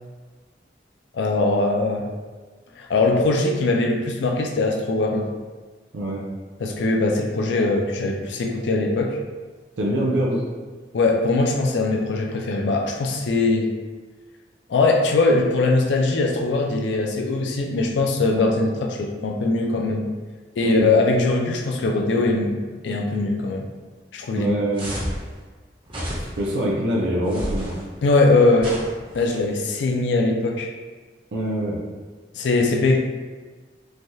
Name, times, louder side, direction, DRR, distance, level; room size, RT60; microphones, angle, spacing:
voice 1, 1.1-2.1 2.8-5.3 6.6-9.2 10.9-13.7 14.7-20.1 20.6-22.6 22.8-23.6 24.1-24.5 28.0-28.7 29.1-30.7 32.4-33.0, left 3 dB, 85° left, 1 dB, 0.4 m, -21 dB
voice 2, 9.8-10.4 13.5-13.6 18.3-18.5 20.6-20.9 24.4-24.9 26.4-27.7 31.3-31.8, right 1 dB, 85° right, -4 dB, 0.5 m, -24 dB
sound 1, 24.7-25.2 25.9-26.5 27.3-27.8 28.6-29.4, equal, 30° right, 0.5 m, -31 dB
3.2 x 2.2 x 2.6 m, 1.4 s
head